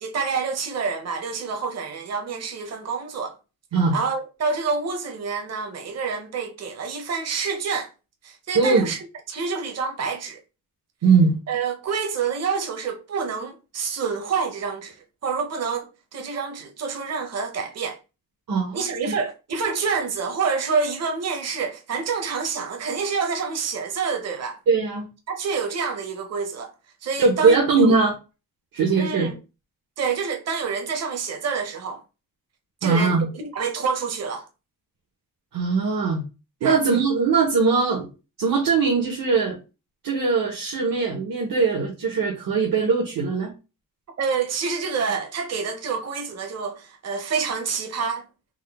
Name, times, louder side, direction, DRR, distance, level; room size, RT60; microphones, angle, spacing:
voice 1, 0.0-3.4 3.9-7.9 8.2-9.0 9.3-10.4 11.5-15.0 15.2-18.0 18.7-24.6 25.3-26.7 27.0-27.9 29.0-29.3 30.0-32.0 32.8-34.4 36.6-36.8 44.2-48.2, right 5 dB, 50° right, 0.7 m, -27 dB
voice 2, 8.5-8.9 11.0-11.4 18.5-19.1 24.7-25.1 27.2-28.1 28.7-29.3 32.8-33.2 35.5-36.2 36.6-38.1 38.4-39.5 40.0-43.5, right 4 dB, 75° right, 0.9 m, -20 dB
3.6 x 2.1 x 3.4 m
wide cardioid pair, 110°, 34 cm